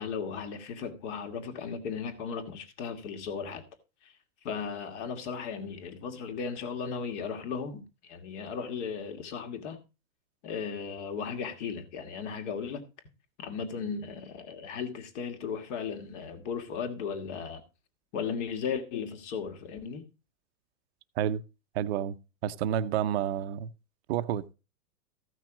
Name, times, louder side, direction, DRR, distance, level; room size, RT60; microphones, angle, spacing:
voice 1, 0.0-3.6 4.0-4.1 4.4-9.8 10.4-12.8 13.4-17.6 18.1-20.0, left 6 dB, 45° left, 2.4 m, -36 dB
voice 2, 21.8-22.2 22.4-23.7 24.1-24.5, right 10 dB, 45° right, 0.8 m, -29 dB
14.5 x 6.2 x 5.0 m
hypercardioid pair, 150°, 47 cm